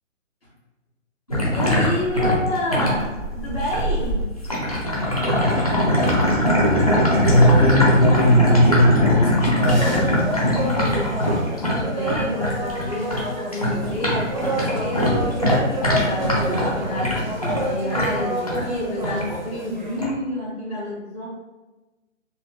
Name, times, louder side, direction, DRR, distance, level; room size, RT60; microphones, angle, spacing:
sound 1, 1.3-13.2 13.5-18.7 19.0-19.3 20.0-20.1, left 1 dB, 30° left, 0.4 m, -21 dB
voice 1, 1.5-4.3 9.9-15.4 15.8-21.3, left 1 dB, 45° left, -11 dB, 1.2 m, -29 dB
voice 2, 7.2-9.9, equal, 70° left, -2 dB, 1.0 m, -18 dB
sound 2, 9.7-20.0, right 1 dB, 40° right, 0.4 m, -29 dB
4.1 x 2.1 x 2.2 m, 1.1 s
hypercardioid pair, 165°, 39 cm